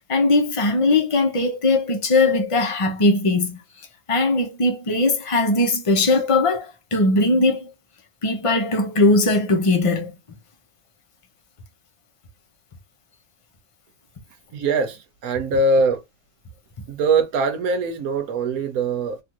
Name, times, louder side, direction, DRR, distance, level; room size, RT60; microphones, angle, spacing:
voice 1, 0.1-3.6 4.1-7.7 8.2-10.1, left 2 dB, 30° left, 0.6 m, -19 dB
voice 2, 14.5-16.0 16.9-19.2, right 3 dB, 70° right, 1.3 m, -22 dB
3.3 x 2.5 x 2.9 m
omnidirectional pair, 1.6 m